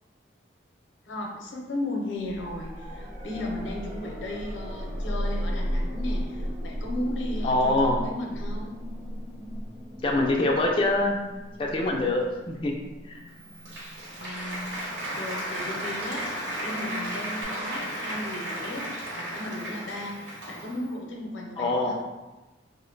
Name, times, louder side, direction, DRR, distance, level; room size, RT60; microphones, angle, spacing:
voice 1, 1.0-8.7 14.2-14.8 15.1-16.3 16.6-21.9, left 1 dB, 85° left, 0 dB, 0.6 m, -35 dB
sound 1, 2.2-15.1 17.4-17.5, equal, 20° right, 0.7 m, -35 dB
voice 2, 7.4-8.0 10.0-11.2 11.6-12.7 13.0-13.2 21.6-21.9, left 2 dB, 30° left, 0 dB, 0.3 m, -24 dB
Applause, 13.3-20.9, equal, 65° right, 1.0 m, -34 dB
2.9 x 2.1 x 3.8 m, 1.1 s
head